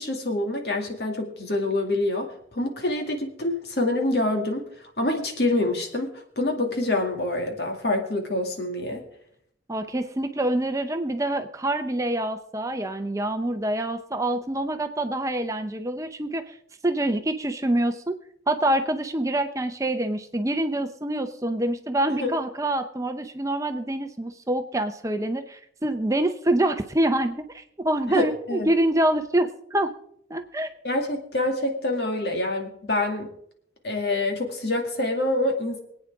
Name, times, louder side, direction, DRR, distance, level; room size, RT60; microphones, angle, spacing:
voice 1, 0.0-2.3 2.5-4.6 5.0-9.0 22.2-22.3 28.1-28.7 30.8-33.3 33.8-35.8, left 2 dB, 60° left, 3 dB, 2.3 m, -26 dB
voice 2, 9.7-16.6 16.8-18.2 18.5-29.9 30.3-30.7, right 1 dB, 15° right, 8 dB, 0.7 m, -26 dB
24.0 x 9.0 x 3.6 m, 0.69 s
head